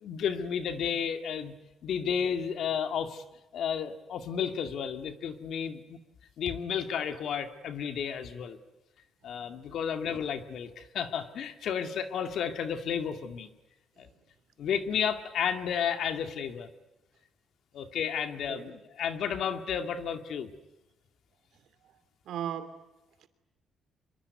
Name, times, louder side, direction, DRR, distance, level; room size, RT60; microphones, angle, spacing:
voice 1, 0.0-1.5 1.8-3.2 3.5-6.0 6.4-8.6 9.2-13.5 14.0-14.1 14.6-16.7 17.7-20.5, left 7 dB, 70° left, 2.2 m, -32 dB
voice 2, 18.3-18.7 22.2-22.8 23.2-23.3, right 9 dB, 75° right, 2.9 m, -38 dB
25.5 x 23.5 x 9.5 m
cardioid pair, 90°, 0 cm